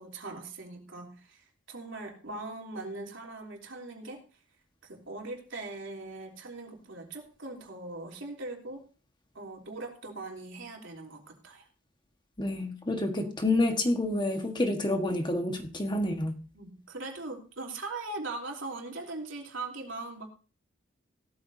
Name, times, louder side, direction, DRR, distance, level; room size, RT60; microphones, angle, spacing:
voice 1, 0.0-4.2 4.8-8.8 9.3-11.7 16.5-20.3, right 2 dB, 70° right, 1 dB, 3.3 m, -40 dB
voice 2, 12.4-16.4, left 2 dB, 25° left, 4 dB, 1.5 m, -28 dB
17.0 x 13.0 x 2.7 m, 0.35 s
head